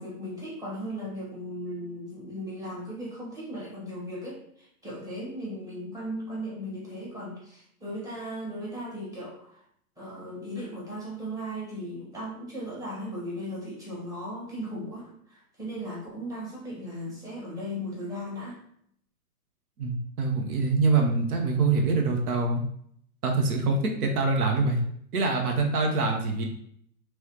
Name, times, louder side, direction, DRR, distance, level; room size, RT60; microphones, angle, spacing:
voice 1, 0.0-9.6 10.0-18.6, equal, 5° right, -7 dB, 1.3 m, -37 dB
voice 2, 19.8-22.6 23.2-24.8 25.1-26.4, right 3 dB, 70° right, 2 dB, 0.8 m, -25 dB
3.2 x 3.0 x 3.0 m, 0.67 s
hypercardioid pair, 120°, 46 cm